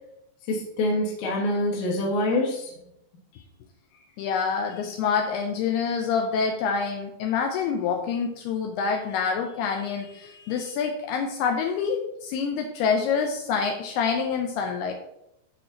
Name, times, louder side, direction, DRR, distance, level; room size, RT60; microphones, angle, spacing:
voice 1, 0.5-2.7, left 1 dB, 55° left, -4 dB, 2.3 m, -25 dB
voice 2, 4.2-14.9, left 6 dB, 80° left, 3 dB, 2.5 m, -26 dB
13.0 x 4.5 x 2.8 m, 0.79 s
omnidirectional pair, 4.9 m